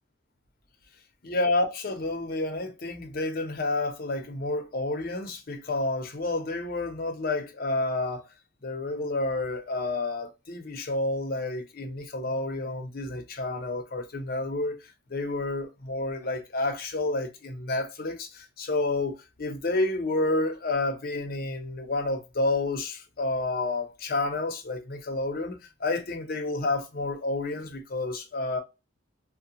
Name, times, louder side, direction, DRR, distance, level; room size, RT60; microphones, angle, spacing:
voice 1, 1.2-8.2 8.6-14.8 15.1-28.6, left 2 dB, 55° left, 0.7 m, -30 dB
2.7 x 2.1 x 2.7 m
head